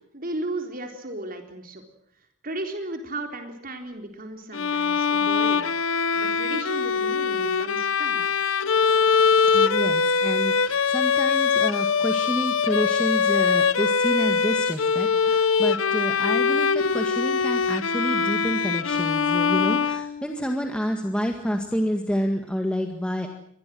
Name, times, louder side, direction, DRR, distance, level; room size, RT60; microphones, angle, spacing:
voice 1, 0.0-1.8 2.4-5.7 6.1-8.2, right 2 dB, 45° right, 5 dB, 3.8 m, -35 dB
Bowed string instrument, 4.5-20.5, left 5 dB, 80° left, 1.0 m, -22 dB
voice 2, 9.5-23.3, equal, 5° left, 4 dB, 1.8 m, -29 dB
25.0 x 20.0 x 7.7 m, 0.69 s
head